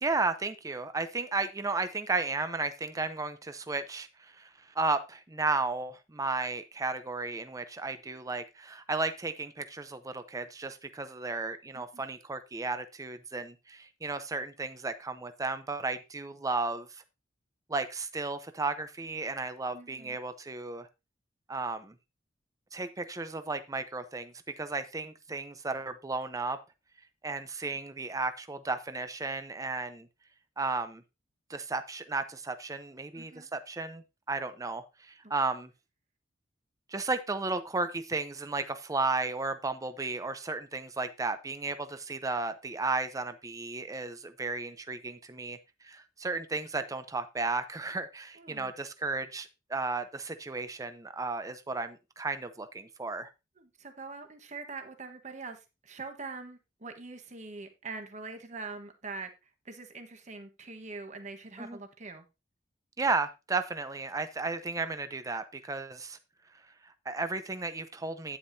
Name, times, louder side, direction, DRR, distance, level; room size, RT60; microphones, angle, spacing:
voice 1, 0.0-17.0 17.7-20.9 21.5-21.9 22.7-26.6 27.2-30.1 30.6-31.0 31.5-35.7 36.9-45.6 45.8-53.3 61.6-61.8 63.0-66.2 66.8-68.4, right 3 dB, 20° right, 0.6 m, -34 dB
voice 2, 19.7-20.2 33.1-33.5 35.2-35.3 48.4-48.7 53.6-59.3 59.6-62.3, right 3 dB, 40° right, 1.2 m, -43 dB
9.4 x 8.7 x 2.7 m
head